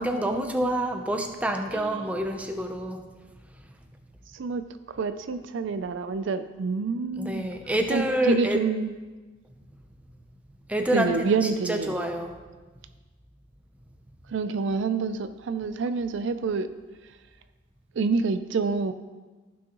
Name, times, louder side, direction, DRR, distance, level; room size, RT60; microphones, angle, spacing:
voice 1, 0.0-3.0 7.2-8.6 10.7-12.4, right 1 dB, 5° right, 4 dB, 0.6 m, -27 dB
voice 2, 1.7-2.1 4.3-7.5 7.9-8.9 10.9-12.0 14.3-16.7 18.0-18.9, right 4 dB, 65° right, 11 dB, 0.4 m, -27 dB
15.0 x 6.2 x 3.0 m, 1.3 s
head